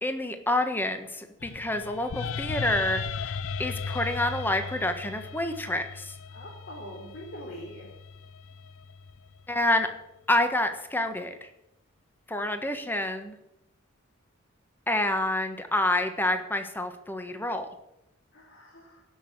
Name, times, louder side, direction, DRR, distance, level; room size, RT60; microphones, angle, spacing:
voice 1, 0.0-3.3 3.6-6.1 9.5-9.9 10.3-11.5 12.3-13.3 14.9-17.7, left 1 dB, 10° left, 7 dB, 1.3 m, -28 dB
sound 1, 1.4-9.6, left 5 dB, 75° left, 0.6 m, -37 dB
voice 2, 6.3-7.9 18.3-19.0, equal, 50° left, -5 dB, 4.0 m, -43 dB
17.0 x 6.4 x 8.7 m, 0.87 s
head